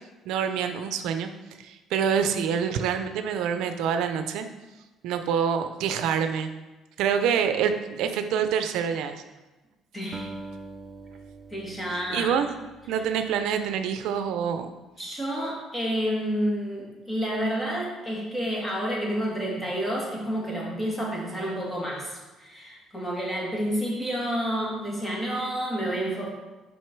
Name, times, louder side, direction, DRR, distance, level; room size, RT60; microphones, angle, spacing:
voice 1, 0.3-1.3 1.6-4.5 5.0-6.5 7.0-9.2 11.9-12.5 12.9-14.7, right 7 dB, 80° right, 8 dB, 0.5 m, -26 dB
voice 2, 9.9-10.3 11.5-12.3 12.9-13.0 15.0-26.3, equal, 10° left, -4 dB, 2.1 m, -29 dB
Acoustic guitar, 10.1-14.6, right 2 dB, 20° right, 0.5 m, -44 dB
6.3 x 5.4 x 4.5 m, 1.1 s
cardioid pair, 125°, 0 cm